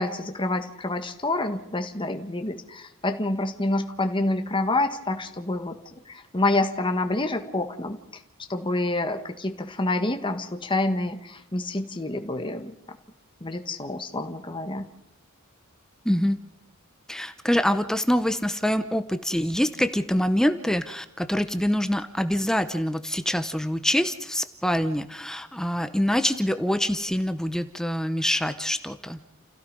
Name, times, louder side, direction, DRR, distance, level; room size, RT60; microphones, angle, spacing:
voice 1, 0.0-5.8 6.1-8.0 8.5-12.8 13.4-14.8, left 2 dB, 25° left, 6 dB, 1.4 m, -27 dB
voice 2, 16.0-16.4 17.1-29.2, equal, 5° left, 9 dB, 0.8 m, -25 dB
30.0 x 16.0 x 5.4 m, 0.78 s
head